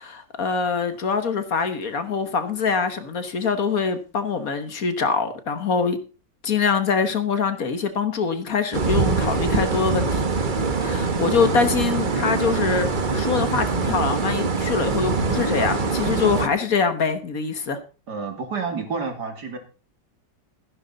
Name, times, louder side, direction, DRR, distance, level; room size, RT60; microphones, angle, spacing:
voice 1, 0.0-6.0 6.4-10.3 10.8-17.8, left 5 dB, 55° left, 10 dB, 1.7 m, -24 dB
sound 1, 8.7-16.5, right 4 dB, 35° right, 1.0 m, -23 dB
voice 2, 18.1-19.6, right 5 dB, 65° right, 5 dB, 3.1 m, -29 dB
15.0 x 11.0 x 4.0 m, 0.35 s
omnidirectional pair, 1.9 m